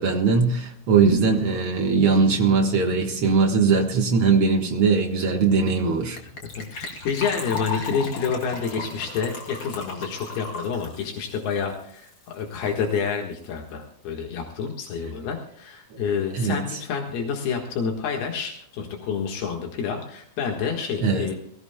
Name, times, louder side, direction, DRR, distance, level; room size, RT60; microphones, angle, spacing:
voice 1, 0.0-6.2 15.9-16.0 16.3-16.6 21.0-21.3, right 4 dB, 60° right, 2 dB, 1.4 m, -20 dB
Gurgling / Trickle dribble / Fill (with liquid), 6.2-12.4 12.7-12.8 12.9-13.1 13.4-13.5, left 4 dB, 35° left, 2.9 m, -36 dB
voice 2, 6.6-21.4, left 6 dB, 80° left, 1 dB, 3.5 m, -28 dB
23.0 x 17.0 x 2.3 m, 0.69 s
omnidirectional pair, 4.4 m